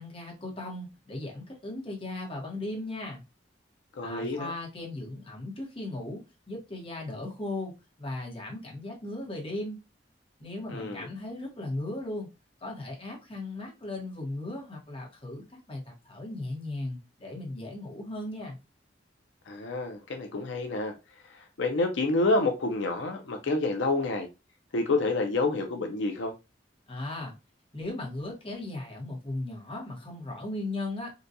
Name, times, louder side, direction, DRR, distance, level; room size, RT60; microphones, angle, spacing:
voice 1, 0.0-3.2 4.0-7.7 8.0-9.8 10.4-12.3 12.6-18.6 26.9-27.3 27.7-31.1, left 2 dB, 30° left, 1.0 m, -37 dB
voice 2, 4.0-4.5 10.7-11.1 19.5-20.9 21.6-24.3 24.7-26.3, left 2 dB, 80° left, 0.5 m, -28 dB
3.9 x 2.2 x 2.6 m
head